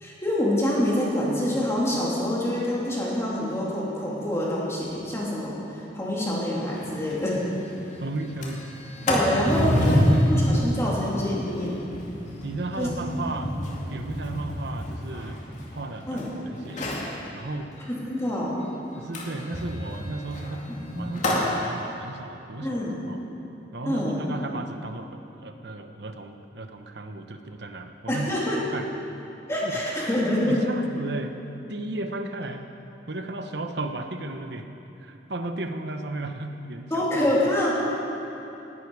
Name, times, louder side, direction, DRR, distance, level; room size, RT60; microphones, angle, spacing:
voice 1, 0.0-7.5 9.1-11.9 12.8-12.9 16.1-16.3 17.9-18.6 22.6-22.9 23.8-24.2 28.1-28.6 29.5-30.6 36.9-37.7, left 1 dB, 15° left, -6 dB, 3.0 m, -26 dB
Sliding door, 6.7-6.8 7.1-7.2 7.5-7.8 8.2-16.2 16.6-17.1 19.1-21.5, equal, 40° left, 2.3 m, -27 dB
voice 2, 8.0-8.6 9.3-10.7 12.4-13.5 13.9-15.4 15.7-17.7 19.0-20.7 21.0-22.8 23.1-23.3 23.7-28.3 28.7-28.9 29.6-29.7 30.5-31.4 31.7-32.7 33.1-34.7 35.0-37.1, right 2 dB, 65° right, 6 dB, 1.0 m, -35 dB
18.5 x 12.0 x 4.8 m, 3.0 s
head